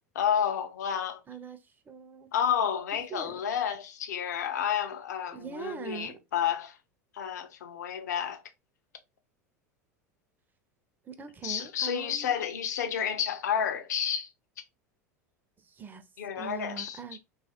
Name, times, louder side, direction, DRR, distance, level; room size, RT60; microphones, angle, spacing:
voice 1, 0.2-1.2 2.3-6.8 7.1-8.4 11.4-14.3 16.2-17.0, left 8 dB, 75° left, 0.4 m, -30 dB
voice 2, 1.3-2.3 3.1-3.3 5.3-6.2 11.0-12.4 15.6-16.1 16.3-17.2, right 7 dB, 20° right, 0.4 m, -42 dB
3.0 x 2.4 x 2.6 m
hypercardioid pair, 85°, 9 cm